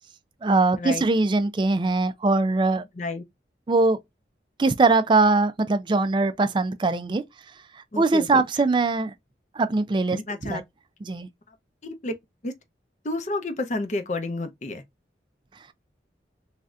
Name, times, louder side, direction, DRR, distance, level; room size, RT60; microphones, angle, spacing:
voice 1, 0.4-2.8 3.7-4.0 4.6-7.2 8.0-9.1 9.6-10.6 11.1-11.3, right 3 dB, 25° right, 0.3 m, -21 dB
voice 2, 7.9-8.3 10.1-10.6 11.8-12.1 12.4-12.5 13.0-14.8, left 2 dB, 40° left, 0.6 m, -30 dB
3.2 x 2.6 x 2.4 m
head